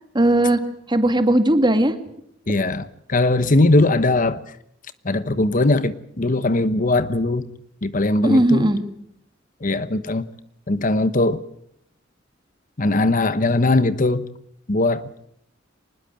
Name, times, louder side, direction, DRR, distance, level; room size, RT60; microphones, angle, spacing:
voice 1, 0.1-0.6 0.9-1.9 8.2-8.8, right 1 dB, 25° right, 9 dB, 2.1 m, -17 dB
voice 2, 2.5-4.4 5.0-7.5 7.8-8.7 9.6-10.2 10.7-11.4 12.8-14.2 14.7-15.0, left 2 dB, 45° left, 14 dB, 1.1 m, -20 dB
24.5 x 20.5 x 7.6 m, 0.70 s
head